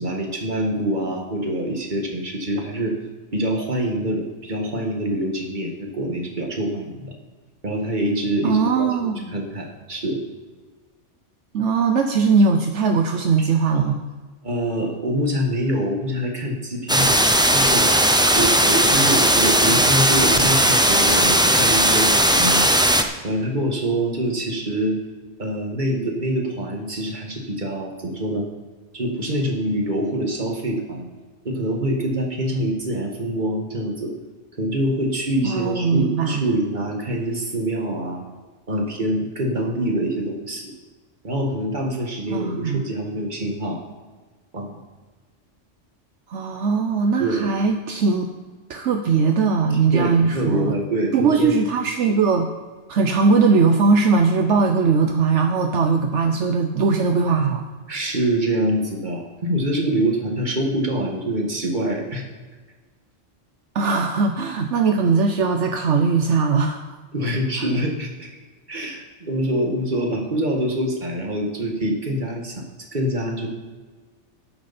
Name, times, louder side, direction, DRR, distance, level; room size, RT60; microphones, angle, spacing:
voice 1, 0.0-3.0 3.3-7.1 7.6-10.2 13.4-13.5 14.4-17.9 18.3-22.6 23.2-25.0 25.4-28.5 28.9-31.1 31.4-34.1 34.6-38.2 38.7-40.7 41.2-43.8 44.5-44.8 47.2-47.5 49.9-51.5 57.9-62.2 67.1-68.3 68.7-72.6 72.9-73.5, right 1 dB, 40° right, 0 dB, 2.0 m, -25 dB
voice 2, 8.4-9.3 11.5-14.0 35.4-36.4 41.9-42.8 46.3-48.3 48.7-50.7 51.1-52.5 52.9-57.6 63.7-66.8, right 4 dB, 75° right, 5 dB, 1.1 m, -20 dB
sound 1, 16.9-23.0, right 1 dB, 5° right, 0.5 m, -17 dB
12.5 x 11.0 x 4.3 m, 1.4 s
omnidirectional pair, 1.2 m